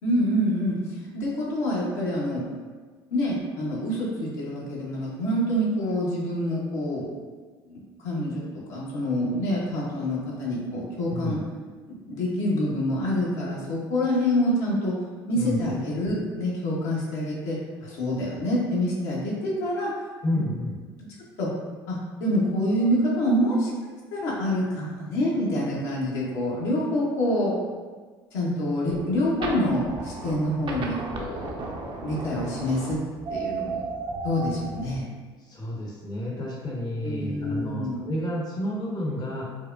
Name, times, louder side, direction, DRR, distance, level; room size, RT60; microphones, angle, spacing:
voice 1, 0.0-2.4 3.1-7.1 7.6-8.4 8.7-11.4 11.9-14.9 15.3-19.9 20.3-20.5 21.4-21.5 21.9-23.7 24.1-27.6 28.3-31.7 32.0-33.0 33.3-33.9 34.2-35.0 37.0-38.0, equal, 70° left, -5 dB, 1.0 m, -26 dB
voice 2, 11.1-11.5 15.4-15.7 20.2-20.8 35.4-39.4, left 1 dB, 30° left, -3 dB, 0.8 m, -31 dB
sound 1, 28.8-35.0, right 3 dB, 40° right, 0.6 m, -34 dB
4.6 x 2.1 x 2.5 m, 1.4 s
hypercardioid pair, 70°, 13 cm